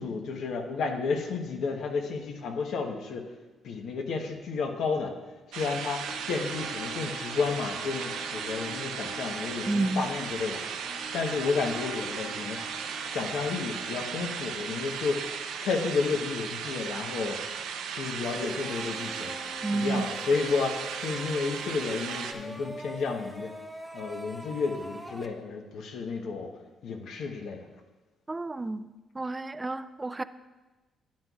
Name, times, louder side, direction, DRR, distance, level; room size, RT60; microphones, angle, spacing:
voice 1, 0.0-3.3 3.6-5.1 5.5-10.6 11.1-12.6 13.0-15.3 15.6-17.4 17.9-19.3 19.7-23.5 23.9-26.5 26.8-27.7, left 4 dB, 75° left, 3 dB, 1.0 m, -31 dB
sound 1, 5.5-22.3, right 7 dB, 90° right, 0.6 m, -36 dB
sound 2, 6.1-14.7, left 2 dB, 35° left, 0.7 m, -45 dB
voice 2, 9.7-10.0 19.6-20.0 28.3-28.9 29.1-30.2, right 2 dB, 20° right, 14 dB, 0.4 m, -30 dB
sound 3, 18.2-25.3, equal, 5° left, 0.8 m, -43 dB
12.0 x 9.3 x 2.4 m, 1.2 s
cardioid pair, 90°, 0 cm